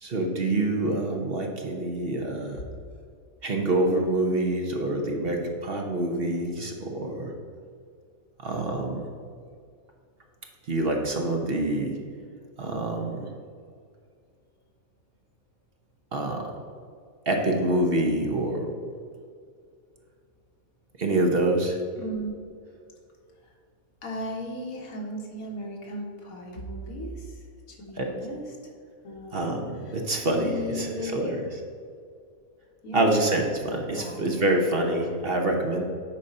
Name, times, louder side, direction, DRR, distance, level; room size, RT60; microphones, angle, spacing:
voice 1, 0.0-2.6 3.4-7.3 8.4-9.1 10.7-12.0 12.6-13.3 16.1-16.5 17.3-18.7 21.0-21.8 28.0-28.1 29.3-29.6 29.9-31.4 32.9-35.8, right 1 dB, 45° right, 2 dB, 1.0 m, -26 dB
voice 2, 22.0-22.4 23.4-23.6 24.0-28.7 29.0-29.6 29.9-31.4 32.8-33.1 33.9-34.4, equal, 75° left, 0 dB, 1.8 m, -37 dB
9.8 x 4.1 x 5.4 m, 2.2 s
omnidirectional pair, 1.5 m